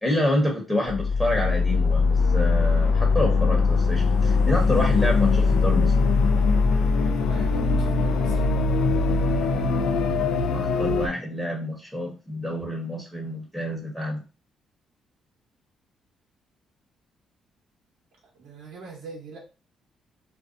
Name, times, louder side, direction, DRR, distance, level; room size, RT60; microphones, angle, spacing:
voice 1, 0.0-5.9 10.5-14.2, left 1 dB, 5° left, -1 dB, 0.9 m, -27 dB
sound 1, 0.8-11.1, left 4 dB, 85° left, 0.3 m, -21 dB
voice 2, 7.0-8.5 18.3-19.4, right 3 dB, 85° right, -3 dB, 0.9 m, -42 dB
2.6 x 2.1 x 2.5 m, 0.31 s
cardioid pair, 90°, 0 cm